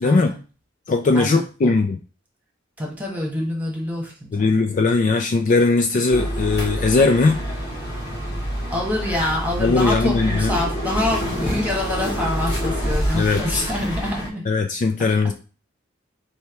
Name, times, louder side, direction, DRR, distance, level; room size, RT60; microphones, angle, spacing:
voice 1, 0.0-0.4 1.1-1.7 2.8-4.5 8.7-14.4, left 1 dB, 10° right, -2 dB, 1.3 m, -26 dB
voice 2, 0.9-2.0 4.3-7.4 9.6-10.6 13.1-13.6 14.5-15.3, left 3 dB, 40° left, 5 dB, 0.4 m, -19 dB
sound 1, 6.1-14.3, equal, 60° left, 1.3 m, -27 dB
3.4 x 2.8 x 4.4 m, 0.35 s
head